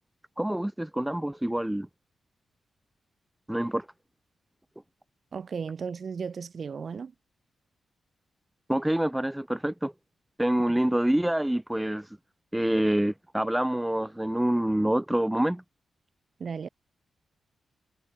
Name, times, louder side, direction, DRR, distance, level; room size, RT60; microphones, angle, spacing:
voice 1, 0.4-1.9 3.5-3.9 8.7-9.9 10.4-12.1 12.5-15.6, right 1 dB, 5° right, 1.0 m, -26 dB
voice 2, 5.3-7.1 10.7-10.8 16.4-16.7, right 6 dB, 50° right, 1.7 m, -35 dB
cardioid pair, 110°, 0 cm